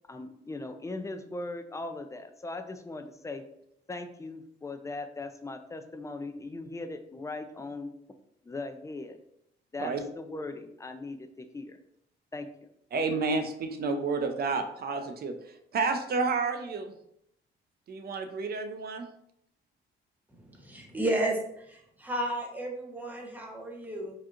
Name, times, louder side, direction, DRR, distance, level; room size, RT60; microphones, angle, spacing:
voice 1, 0.1-3.4 3.9-7.9 8.4-9.2 9.7-11.8 12.3-12.5, left 2 dB, 15° left, 8 dB, 0.4 m, -39 dB
voice 2, 12.9-15.3 15.7-16.9 17.9-19.1, right 4 dB, 50° right, 7 dB, 0.5 m, -30 dB
voice 3, 20.3-24.1, right 1 dB, 10° right, 0 dB, 0.9 m, -33 dB
4.9 x 2.8 x 2.4 m, 0.76 s
cardioid pair, 90°, 20 cm